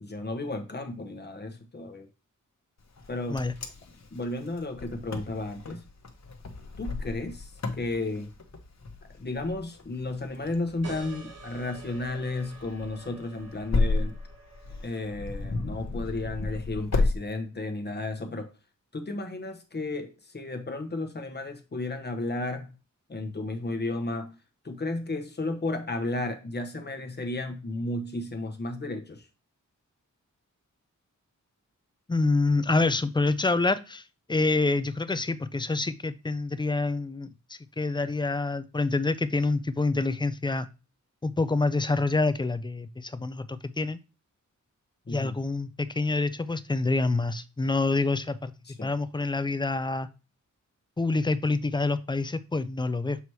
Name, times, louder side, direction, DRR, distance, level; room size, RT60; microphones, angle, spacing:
voice 1, 0.0-2.1 3.1-3.5 4.1-5.8 6.8-8.3 9.1-14.2 14.8-18.5 18.9-22.7 23.1-24.4 24.6-29.3 45.1-45.4 48.6-48.9, left 2 dB, 30° left, 1.0 m, -33 dB
Wind, 3.0-17.1, left 3 dB, 55° left, 1.1 m, -33 dB
sound 1, 10.8-16.0, right 4 dB, 50° right, 1.4 m, -48 dB
voice 2, 32.1-34.0 34.3-40.7 41.2-44.0 45.1-48.5 48.8-50.1 51.0-53.2, left 3 dB, 15° left, 0.4 m, -27 dB
6.9 x 2.9 x 4.6 m
wide cardioid pair, 145°, 32 cm